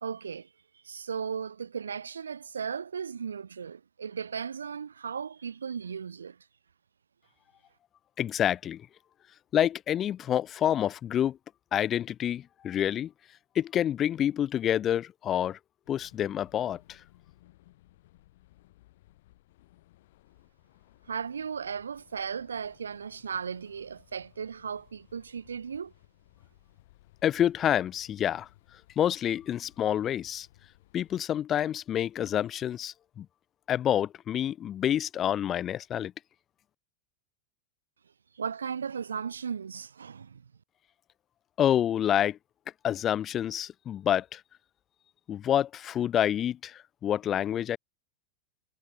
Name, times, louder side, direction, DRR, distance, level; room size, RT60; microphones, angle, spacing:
voice 1, 0.0-0.5 0.8-6.4 21.1-25.9 38.4-40.4, right 6 dB, 85° right, 0.5 m, -36 dB
voice 2, 8.2-8.9 9.5-11.4 11.7-13.1 13.5-15.6 15.9-17.0 27.2-28.5 29.0-30.5 30.9-33.3 33.7-36.1 41.6-42.4 42.8-44.4 45.3-47.8, left 10 dB, 35° left, 0.8 m, -28 dB
sound 1, 15.8-31.2, left 16 dB, 65° left, 5.9 m, -61 dB
hypercardioid pair, 95°, 0 cm